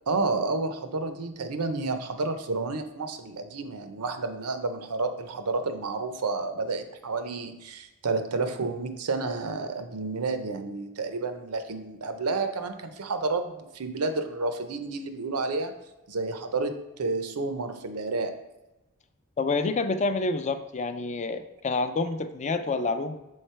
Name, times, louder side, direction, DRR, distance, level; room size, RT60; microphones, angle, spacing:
voice 1, 0.1-15.7 16.1-18.4, right 3 dB, 85° right, 8 dB, 0.6 m, -30 dB
voice 2, 19.4-23.2, left 3 dB, 30° left, 9 dB, 0.4 m, -28 dB
7.2 x 3.3 x 4.4 m, 0.99 s
head